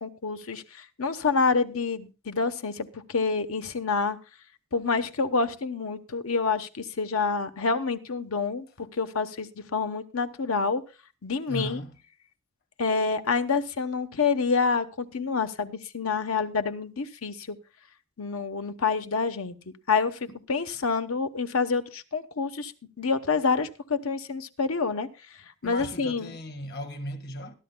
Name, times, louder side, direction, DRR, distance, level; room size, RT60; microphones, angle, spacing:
voice 1, 0.0-4.2 4.7-10.8 11.2-11.8 12.8-17.6 18.2-19.5 19.9-20.2 20.5-22.7 23.0-25.1 25.6-26.3, left 4 dB, 85° left, 1.0 m, -27 dB
voice 2, 11.5-11.9 20.3-20.4 25.6-27.5, equal, 50° left, 1.6 m, -36 dB
22.0 x 12.0 x 2.2 m
head